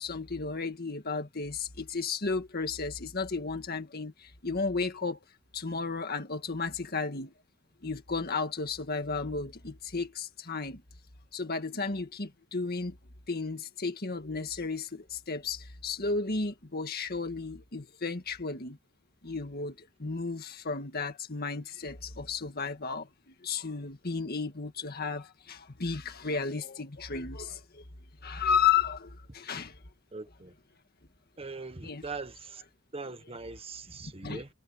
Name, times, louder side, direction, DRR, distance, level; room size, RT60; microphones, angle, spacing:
voice 1, 0.0-5.2 5.5-7.3 7.8-10.8 11.3-13.0 13.3-18.8 19.2-27.8 28.2-29.8 31.8-32.0 34.2-34.4, left 5 dB, 50° left, 1.8 m, -33 dB
voice 2, 30.1-30.5 31.4-32.6 32.9-34.5, right 3 dB, 30° right, 1.5 m, -41 dB
head